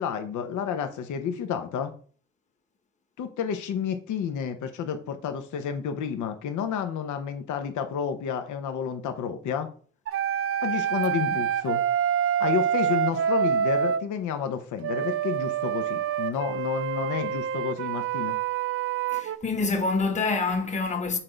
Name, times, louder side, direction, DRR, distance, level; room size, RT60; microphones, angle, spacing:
voice 1, 0.0-1.9 3.2-9.7 10.6-11.8 12.4-18.3, left 7 dB, 75° left, 0.8 m, -30 dB
sound 1, 10.1-14.0 14.8-19.4, right 9 dB, 50° right, 0.5 m, -27 dB
voice 2, 19.1-21.2, left 3 dB, 25° left, 1.1 m, -26 dB
5.9 x 3.9 x 4.5 m
cardioid pair, 90°, 30 cm